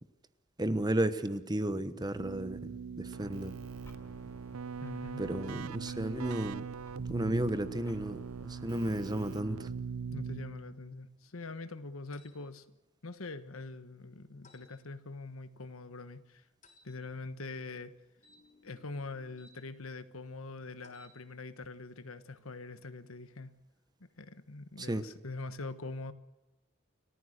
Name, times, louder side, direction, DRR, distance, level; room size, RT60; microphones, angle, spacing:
voice 1, 0.6-3.5 5.2-6.6 7.1-9.7 24.8-25.0, right 1 dB, 20° right, 11 dB, 1.1 m, -33 dB
Keyboard (musical), 2.2-10.9, right 6 dB, 85° right, 0.6 m, -41 dB
sound 1, 3.6-8.9, equal, 15° left, 3.3 m, -54 dB
voice 2, 4.8-5.2 10.1-12.6 13.0-16.4 16.8-17.9 18.6-23.5 24.0-26.1, left 3 dB, 80° left, 11 dB, 1.3 m, -43 dB
sound 2, 12.1-12.4 14.4-14.7 16.6-16.9 18.2-19.6 20.8-21.2, left 3 dB, 35° left, 3.8 m, -61 dB
29.5 x 14.0 x 6.6 m, 1.0 s
head